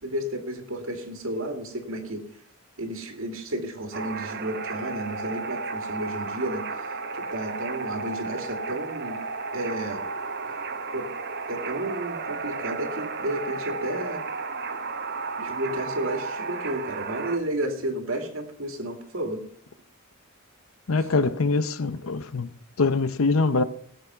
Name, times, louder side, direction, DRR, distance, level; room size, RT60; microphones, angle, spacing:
voice 1, 0.0-2.2 2.8-6.7 7.1-9.2 9.5-10.0 10.4-10.6 10.9-11.1 11.5-14.2 15.4-19.5, right 1 dB, 75° right, 2.2 m, -32 dB
sound 1, 3.9-17.4, right 4 dB, 55° right, 1.0 m, -33 dB
voice 2, 20.9-22.5 22.8-23.6, left 3 dB, 85° left, 0.7 m, -23 dB
18.5 x 7.1 x 5.6 m
head